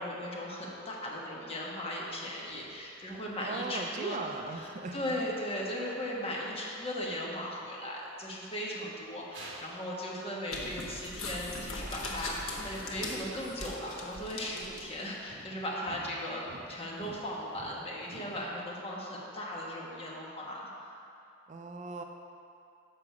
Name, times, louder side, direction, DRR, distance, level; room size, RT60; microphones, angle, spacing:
voice 1, 0.0-16.4 16.7-20.9, equal, 30° left, -4 dB, 1.2 m, -37 dB
sound 1, 1.8-1.9 2.5-3.4 4.2-4.8 5.8-5.9 6.2-6.4 6.8-7.1 8.1-8.2 8.7-8.8 9.3-9.8 10.1-10.4 11.8-12.3 12.9-13.9 14.5-14.9 15.3-18.5, right 1 dB, 65° right, 1.2 m, -52 dB
voice 2, 3.4-5.0 21.5-22.0, right 3 dB, 35° right, 4 dB, 0.4 m, -38 dB
sound 2, 10.5-15.1, left 2 dB, 85° left, 1.0 m, -40 dB
6.6 x 4.8 x 6.9 m, 2.7 s
head